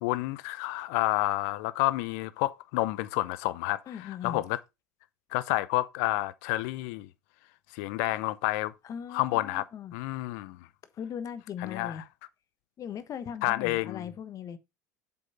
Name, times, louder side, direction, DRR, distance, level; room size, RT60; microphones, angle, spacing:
voice 1, 0.0-4.6 5.3-7.1 7.7-8.7 9.1-9.6 9.9-10.6 11.6-12.0 13.4-14.1, left 18 dB, 60° left, 0.7 m, -29 dB
voice 2, 3.9-4.4 8.8-9.9 11.0-12.0 12.8-14.6, left 8 dB, 40° left, 1.2 m, -39 dB
7.5 x 5.8 x 4.3 m
hypercardioid pair, 75°, 9 cm